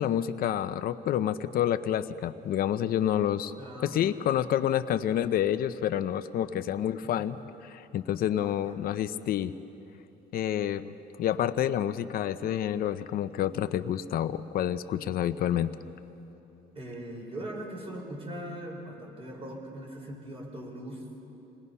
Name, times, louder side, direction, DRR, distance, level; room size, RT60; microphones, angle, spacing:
voice 1, 0.0-3.5 3.8-7.4 7.6-9.5 10.3-10.9 11.2-15.7, left 10 dB, 60° left, 12 dB, 0.8 m, -28 dB
voice 2, 3.6-4.2 8.4-8.9 16.8-21.0, right 1 dB, 35° right, -1 dB, 5.4 m, -40 dB
27.0 x 20.0 x 5.6 m, 3.0 s
cardioid pair, 110°, 17 cm